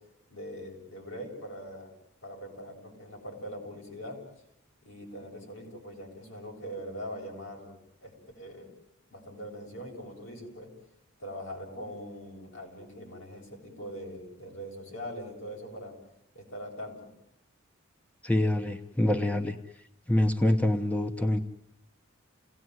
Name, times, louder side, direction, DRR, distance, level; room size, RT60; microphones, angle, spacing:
voice 1, 0.3-1.9 2.2-4.2 4.8-7.7 8.0-8.7 9.1-10.7 11.2-15.9 16.3-17.0, equal, 70° left, 1 dB, 7.9 m, -42 dB
voice 2, 18.2-19.6 20.1-21.4, left 1 dB, 5° left, 5 dB, 1.0 m, -25 dB
29.0 x 18.0 x 9.5 m, 0.79 s
head